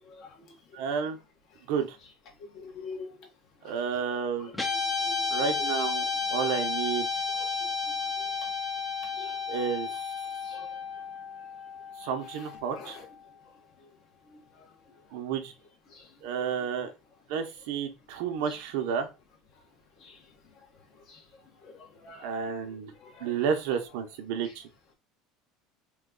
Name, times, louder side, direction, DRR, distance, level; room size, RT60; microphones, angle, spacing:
voice 1, 0.7-1.2 1.7-2.0 3.6-4.5 5.3-7.2 9.5-9.9 12.0-13.0 15.1-15.5 16.2-16.9 17.3-19.1 22.2-22.9 23.2-24.6, right 7 dB, 75° right, 0.7 m, -31 dB
voice 2, 2.5-3.1 5.0-5.3 7.4-7.6 9.2-9.4 10.4-10.7 12.7-13.0 15.9-16.0 20.0-20.2 21.1-21.2 21.6-23.3, left 4 dB, 45° left, 1.0 m, -45 dB
Guitar, 4.5-13.0, left 4 dB, 10° left, 0.6 m, -32 dB
3.1 x 2.2 x 3.7 m
cardioid pair, 140°, 0 cm